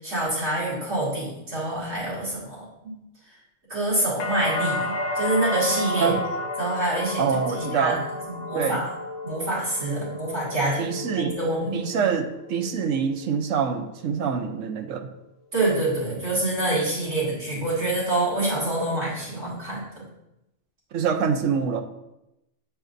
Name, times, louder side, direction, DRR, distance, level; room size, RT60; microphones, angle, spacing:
voice 1, 0.0-2.6 3.7-6.1 6.6-7.2 7.6-7.9 8.3-8.9 9.2-11.8 15.5-20.1, right 2 dB, 55° right, -9 dB, 2.7 m, -26 dB
sound 1, 4.2-12.1 12.5-13.1, left 2 dB, 75° left, 1.1 m, -31 dB
voice 2, 7.2-8.0 8.5-8.9 10.8-11.4 11.7-15.1 20.9-21.8, right 6 dB, 80° right, 5 dB, 1.0 m, -25 dB
8.9 x 4.9 x 2.6 m, 0.90 s
omnidirectional pair, 1.3 m